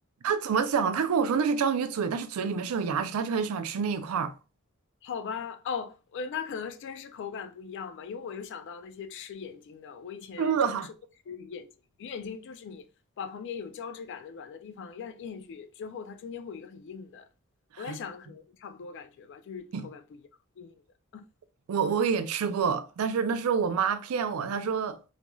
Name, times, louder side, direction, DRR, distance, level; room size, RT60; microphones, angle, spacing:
voice 1, 0.2-4.3 10.4-10.9 17.7-18.0 19.7-19.9 21.7-25.0, right 6 dB, 85° right, 0.4 m, -27 dB
voice 2, 5.0-10.8 11.3-11.7 12.0-12.8 13.2-17.3 17.8-20.2 20.6-20.8 21.1-21.2, left 6 dB, 55° left, 0.3 m, -39 dB
3.0 x 2.4 x 2.2 m
head